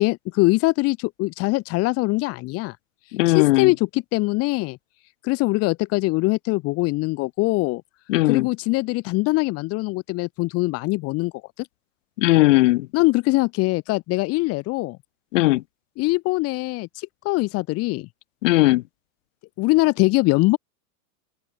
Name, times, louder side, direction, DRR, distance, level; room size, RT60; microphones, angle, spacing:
voice 1, 0.0-2.8 3.0-4.8 5.2-7.8 8.3-11.7 12.9-15.0 16.0-18.1 19.6-20.6, left 22 dB, 30° left, 2.7 m, -22 dB
voice 2, 3.1-3.7 8.1-8.5 12.2-12.9 15.3-15.6 18.4-18.8, left 19 dB, 55° left, 6.5 m, -18 dB
supercardioid pair, 165°, 44 cm